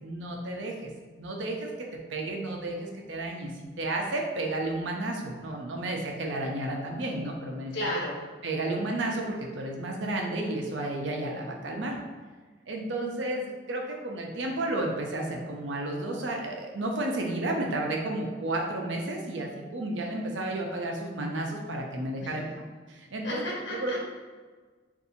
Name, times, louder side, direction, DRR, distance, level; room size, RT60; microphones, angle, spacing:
voice 1, 0.0-0.9 1.2-3.5 3.8-7.7 8.4-12.0 12.7-22.5 22.9-23.9, right 2 dB, 85° right, 1 dB, 0.6 m, -32 dB
voice 2, 7.7-8.2 22.2-22.3 23.2-24.0, left 1 dB, 70° left, -5 dB, 1.1 m, -33 dB
2.6 x 2.6 x 4.2 m, 1.4 s
head